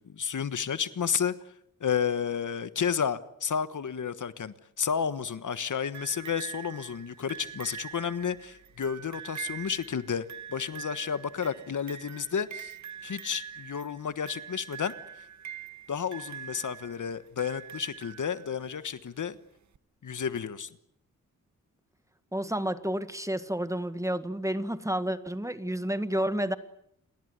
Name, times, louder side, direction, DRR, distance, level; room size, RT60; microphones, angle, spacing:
voice 1, 0.0-1.3 1.8-12.8 13.0-14.9 15.9-19.4 20.0-20.7, left 7 dB, 65° left, 14 dB, 1.4 m, -31 dB
sound 1, 5.9-18.8 19.7-19.8, right 8 dB, 55° right, 1.1 m, -44 dB
voice 2, 22.3-26.5, right 1 dB, 10° right, 12 dB, 1.7 m, -30 dB
29.5 x 20.5 x 8.2 m, 0.71 s
wide cardioid pair, 85°, 33 cm